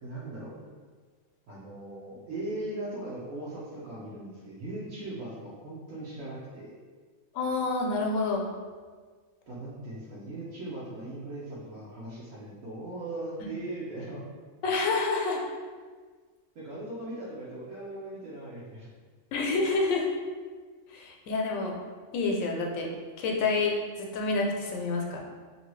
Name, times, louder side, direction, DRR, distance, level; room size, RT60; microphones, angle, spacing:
voice 1, 0.0-0.5 1.5-6.7 9.5-14.2 16.5-18.9, right 1 dB, 75° right, -8 dB, 1.0 m, -39 dB
voice 2, 7.3-8.5 14.6-15.4 19.3-20.1 20.9-21.8 22.1-22.9 23.2-25.2, left 3 dB, 85° left, 0 dB, 1.0 m, -28 dB
2.7 x 2.6 x 3.0 m, 1.5 s
omnidirectional pair, 1.4 m